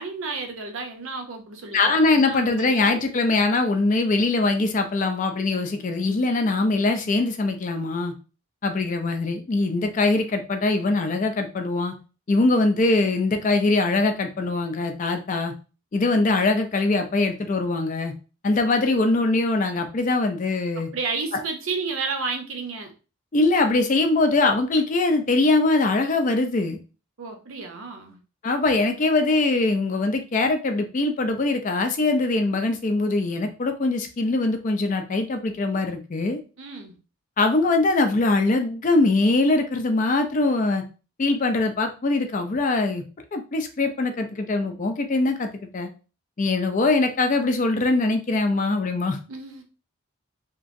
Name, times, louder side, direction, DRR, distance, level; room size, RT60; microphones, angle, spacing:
voice 1, 0.0-3.0 20.8-22.9 27.2-28.2 36.6-37.0 49.3-49.6, right 4 dB, 65° right, 4 dB, 0.6 m, -32 dB
voice 2, 1.7-8.1 8.6-11.9 12.3-15.5 15.9-18.1 18.4-20.9 21.3-21.4 23.3-26.8 28.4-36.4 37.4-40.8 41.2-43.0 43.3-45.9 46.4-49.2, left 2 dB, 35° left, 6 dB, 0.4 m, -22 dB
2.9 x 2.5 x 2.5 m, 0.34 s
head